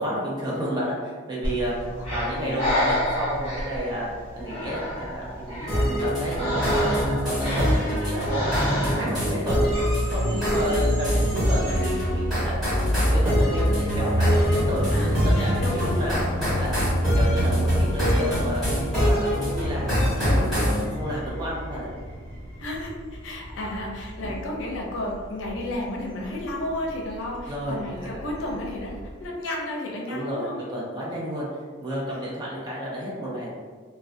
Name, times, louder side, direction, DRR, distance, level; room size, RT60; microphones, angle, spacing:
voice 1, 0.0-4.1 4.4-8.4 8.7-9.7 10.1-12.5 13.1-21.9 24.2-24.3 27.5-28.2 28.5-28.6 30.1-31.5 31.8-33.5, equal, 20° right, -5 dB, 0.5 m, -31 dB
Breathing, 1.4-9.3, equal, 30° left, 1.0 m, -29 dB
voice 2, 2.4-2.8 14.9-15.1 15.3-16.0 22.6-30.6, left 1 dB, 75° left, -1 dB, 0.5 m, -32 dB
sound 1, 5.7-20.8, equal, ahead, 1.1 m, -25 dB
sound 2, 9.7-29.3, equal, 50° right, 1.1 m, -29 dB
2.3 x 2.2 x 2.5 m, 1.5 s
head